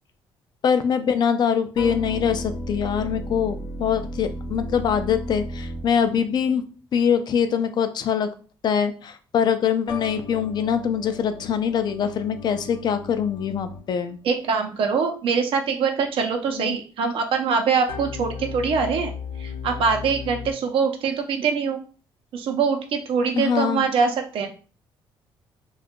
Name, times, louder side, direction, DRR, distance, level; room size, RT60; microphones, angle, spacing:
voice 1, 0.6-6.6 6.9-8.3 8.6-14.2 16.5-16.8 23.3-23.9, left 7 dB, 50° left, 9 dB, 0.4 m, -23 dB
sound 1, 1.7-6.4 9.9-14.2 17.9-20.5, left 2 dB, 70° left, 0.8 m, -35 dB
voice 2, 14.2-19.1 19.4-21.8 22.3-24.5, right 5 dB, 70° right, 5 dB, 0.7 m, -23 dB
2.7 x 2.3 x 3.6 m, 0.38 s
cardioid pair, 110°, 10 cm